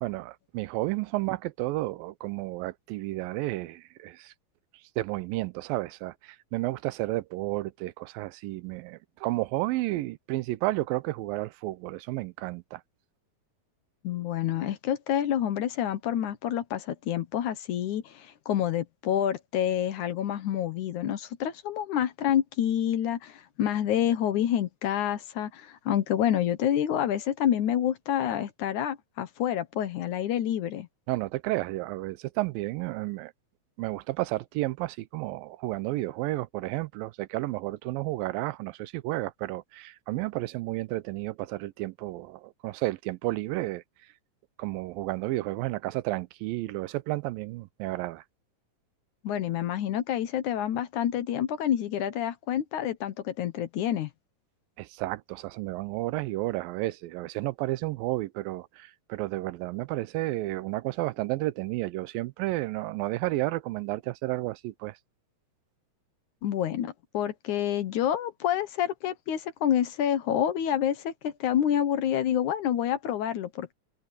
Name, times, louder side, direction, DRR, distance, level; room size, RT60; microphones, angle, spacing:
voice 1, 0.0-4.3 5.0-12.8 31.1-33.3 33.8-43.8 44.6-48.2 54.8-65.0, right 19 dB, 85° right, 2.4 m, -32 dB
voice 2, 14.0-30.9 49.2-54.1 66.4-73.7, left 10 dB, 65° left, 2.3 m, -28 dB
omnidirectional pair, 4.0 m